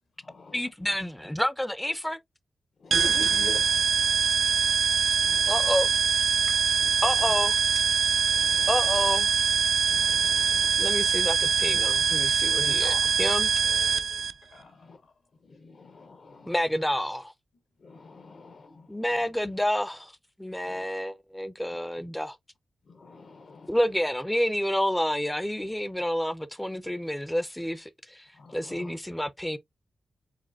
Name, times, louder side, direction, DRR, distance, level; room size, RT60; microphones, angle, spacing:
voice 1, 0.5-2.2 5.5-5.9 7.0-7.8 8.7-9.3 10.8-13.5 16.5-17.3 18.9-20.1 20.4-22.4 23.7-28.3 28.5-29.6, equal, 5° left, 0.4 m, -29 dB
voice 2, 2.9-3.6 12.6-13.1 13.6-14.8, left 3 dB, 85° left, 2.1 m, -39 dB
sound 1, 2.9-14.3, right 6 dB, 65° right, 0.3 m, -24 dB
voice 3, 8.3-8.7 9.9-10.7 14.9-15.0 15.8-16.5 17.9-18.6 20.7-20.8 23.0-23.6 28.5-28.6, left 4 dB, 60° left, 0.8 m, -50 dB
4.9 x 3.7 x 2.3 m
cardioid pair, 90°, 0 cm